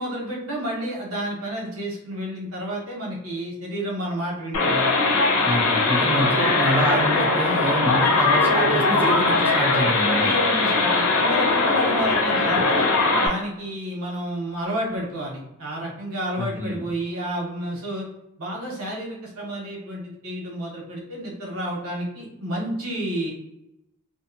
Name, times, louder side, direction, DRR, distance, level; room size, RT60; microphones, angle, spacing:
voice 1, 0.0-4.9 5.4-5.5 10.1-12.9 13.2-18.1 18.4-23.3, right 1 dB, 70° right, -3 dB, 0.9 m, -30 dB
sound 1, 4.5-13.3, left 3 dB, 75° left, 0.6 m, -20 dB
voice 2, 5.4-10.3 16.4-16.9, equal, 10° right, 0 dB, 0.4 m, -26 dB
2.6 x 2.3 x 2.5 m, 0.86 s
head